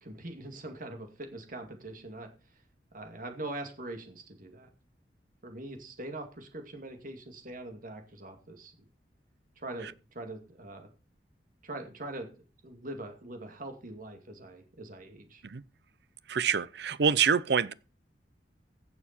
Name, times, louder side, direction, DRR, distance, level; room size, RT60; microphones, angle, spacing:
voice 1, 0.0-2.3 2.9-4.7 5.4-8.9 9.6-10.9 11.6-12.3 12.6-15.4, right 2 dB, 50° right, 2.3 m, -42 dB
voice 2, 16.3-17.7, right 6 dB, 70° right, 0.6 m, -26 dB
15.5 x 7.0 x 4.4 m
head